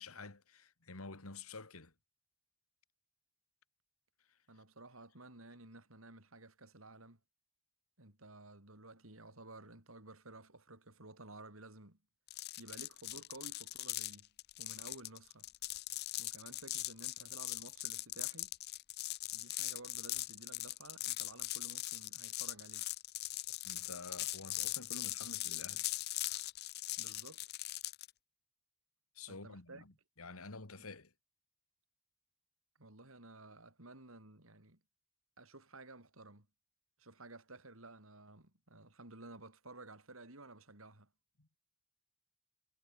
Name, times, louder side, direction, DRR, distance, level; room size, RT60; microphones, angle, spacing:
voice 1, 0.0-1.9 23.6-25.9 29.1-31.1 41.4-41.5, left 3 dB, 85° left, 2.5 m, -50 dB
voice 2, 4.5-7.2 8.0-12.0 12.6-14.3 14.6-15.5 16.2-18.5 19.3-22.9 27.0-27.4 29.3-29.8 30.8-30.9 32.8-34.8 35.4-36.5 37.0-41.1, right 2 dB, 70° right, 4.6 m, -54 dB
sound 1, 12.3-28.1, left 17 dB, 50° left, 0.4 m, -41 dB
head